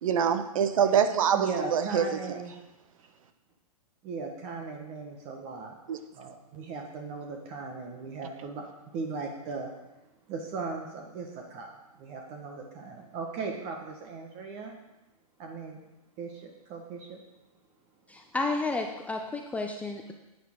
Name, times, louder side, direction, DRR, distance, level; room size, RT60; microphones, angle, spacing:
voice 1, 0.0-2.1 5.9-6.0, right 8 dB, 60° right, 10 dB, 1.0 m, -25 dB
voice 2, 1.3-2.6 4.0-5.8 6.1-8.6 8.9-9.7 10.3-11.7 12.0-14.7 15.4-15.8 16.2-17.2, right 4 dB, 35° right, 2 dB, 1.4 m, -37 dB
voice 3, 18.1-20.1, left 3 dB, 5° left, 3 dB, 0.5 m, -32 dB
11.0 x 9.0 x 3.7 m, 0.99 s
hypercardioid pair, 125°, 20 cm